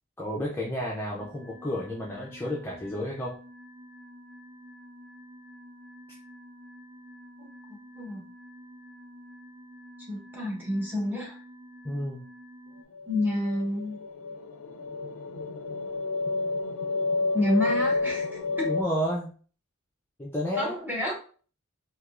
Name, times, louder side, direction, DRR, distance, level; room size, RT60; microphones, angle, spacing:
voice 1, 0.2-3.4 11.8-12.2 18.7-19.3 20.2-20.8, equal, 10° left, -4 dB, 0.4 m, -31 dB
sound 1, 1.2-12.8, equal, 65° right, 0.8 m, -49 dB
voice 2, 7.4-8.2 10.1-11.4 13.1-14.0 17.3-18.7 20.6-21.1, left 1 dB, 10° right, -3 dB, 0.9 m, -29 dB
sound 2, 12.9-18.8, left 3 dB, 70° left, 0.4 m, -30 dB
3.3 x 2.8 x 2.4 m, 0.40 s
head